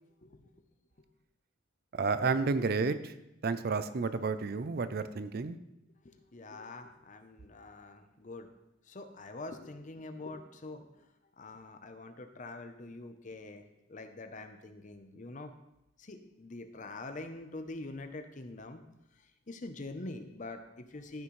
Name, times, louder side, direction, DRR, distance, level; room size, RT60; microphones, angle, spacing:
voice 1, 1.9-3.1 3.4-5.6, right 4 dB, 50° right, 12 dB, 0.5 m, -31 dB
voice 2, 6.0-8.5 8.9-10.9 11.4-15.5 16.0-18.8 19.5-21.2, left 2 dB, 40° left, 7 dB, 0.8 m, -45 dB
13.5 x 6.0 x 3.2 m, 0.89 s
head